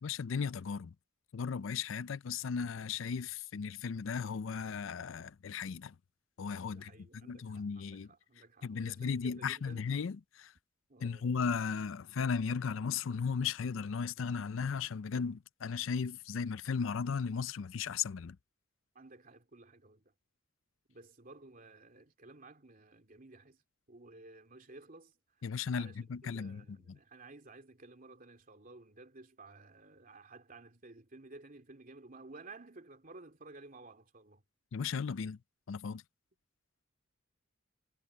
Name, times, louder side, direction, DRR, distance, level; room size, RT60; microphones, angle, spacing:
voice 1, 0.0-0.9 1.3-5.9 6.4-8.1 8.6-10.5 11.0-18.4 25.4-27.0 34.7-35.4 35.7-36.0, left 6 dB, 70° left, 0.5 m, -36 dB
voice 2, 6.7-9.9 10.9-11.3 18.9-20.0 20.9-23.6 23.9-25.1 25.7-34.4, right 3 dB, 45° right, 2.9 m, -54 dB
head